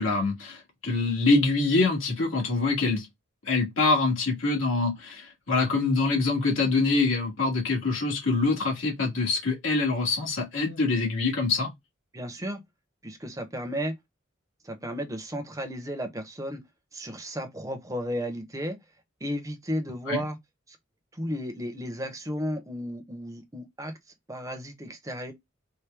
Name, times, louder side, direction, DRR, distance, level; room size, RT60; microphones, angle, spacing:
voice 1, 0.0-3.1 3.4-11.7 20.1-20.2, left 3 dB, 75° left, 1.6 m, -25 dB
voice 2, 12.1-12.6 13.0-13.9 14.6-16.6 16.9-18.8 19.2-20.4 20.7-20.8 21.1-23.9 24.3-25.3, equal, 15° right, 0.7 m, -33 dB
4.5 x 2.2 x 3.3 m
head